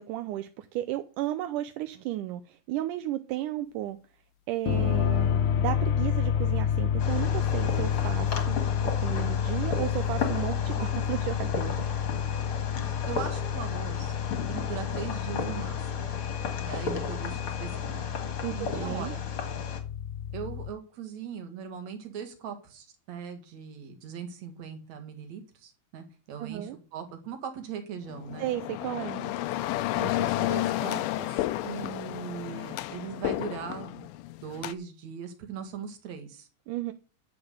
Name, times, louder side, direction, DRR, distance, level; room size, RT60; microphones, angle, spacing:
voice 1, 0.0-4.0 4.5-11.9 18.4-19.1 26.4-26.8 28.4-29.3 36.7-36.9, right 14 dB, 75° right, 10 dB, 2.0 m, -34 dB
sound 1, 4.7-20.7, left 8 dB, 70° left, 2.1 m, -29 dB
Fireworks, 7.0-19.8, left 5 dB, 45° left, 2.1 m, -35 dB
voice 2, 13.1-16.1 16.7-18.0 18.5-19.2 20.3-28.5 29.9-34.1 34.4-36.5, right 7 dB, 55° right, 7 dB, 2.8 m, -40 dB
sound 2, 28.1-34.7, left 15 dB, 90° left, 2.5 m, -31 dB
10.0 x 7.0 x 6.7 m, 0.37 s
omnidirectional pair, 4.1 m